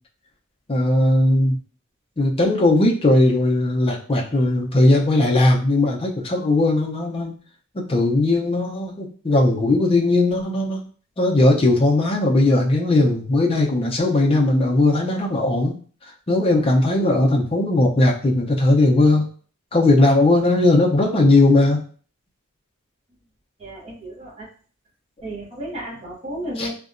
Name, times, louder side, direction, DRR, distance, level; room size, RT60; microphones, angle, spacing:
voice 1, 0.7-1.6 2.2-7.3 7.7-10.8 11.2-15.8 16.0-19.3 19.7-21.8 26.6-26.7, left 2 dB, 25° left, -1 dB, 0.5 m, -18 dB
voice 2, 23.6-24.5 25.2-26.8, right 1 dB, 30° right, -5 dB, 0.7 m, -33 dB
2.7 x 2.1 x 2.4 m, 0.42 s
head